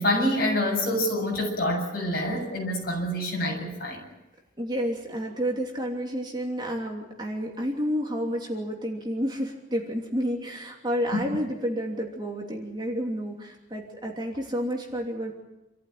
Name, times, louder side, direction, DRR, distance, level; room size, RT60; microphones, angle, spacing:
voice 1, 0.0-4.0, left 1 dB, 50° left, 0 dB, 7.7 m, -26 dB
voice 2, 4.6-15.3, equal, 20° right, 0 dB, 3.0 m, -30 dB
27.5 x 14.5 x 9.4 m, 1.0 s
head